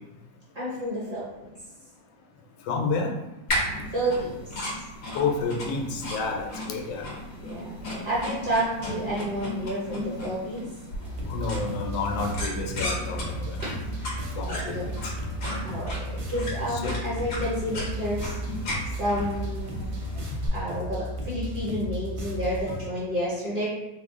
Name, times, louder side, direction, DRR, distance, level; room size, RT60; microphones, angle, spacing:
voice 1, 0.5-1.5 3.9-4.5 7.4-10.7 11.5-11.6 13.6-14.1 14.5-14.9 15.6-18.4 19.0-19.8 20.5-23.7, equal, 55° right, -8 dB, 0.5 m, -30 dB
voice 2, 2.7-3.1 5.1-7.1 11.3-13.6 14.4-15.1 16.7-16.9, left 4 dB, 85° left, 2 dB, 1.3 m, -30 dB
sound 1, 3.5-20.5, left 1 dB, 55° left, 1.0 m, -35 dB
sound 2, 11.0-22.8, right 1 dB, 90° right, 1.4 m, -34 dB
3.3 x 2.1 x 3.6 m, 0.98 s
omnidirectional pair, 2.0 m